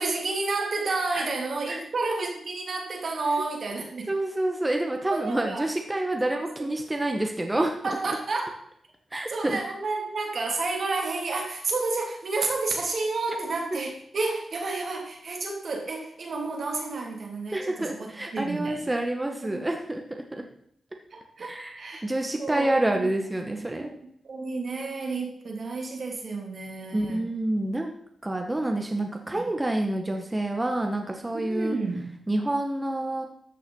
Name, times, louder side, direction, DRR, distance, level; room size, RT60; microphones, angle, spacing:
voice 1, 0.0-4.1 5.1-5.7 6.3-6.7 7.8-8.6 9.3-18.9 19.4-19.6 20.4-20.5 21.1-22.0 22.4-23.1 23.5-23.9 24.3-27.2 29.1-29.4 31.3-32.1, right 3 dB, 65° right, 1 dB, 3.2 m, -31 dB
voice 2, 4.1-8.2 9.1-9.6 17.5-20.2 21.4-21.8 22.0-23.9 26.9-27.9 28.2-31.7 32.3-33.3, right 1 dB, 20° right, 3 dB, 1.7 m, -28 dB
13.5 x 6.1 x 5.7 m, 0.68 s
cardioid pair, 55°, 0 cm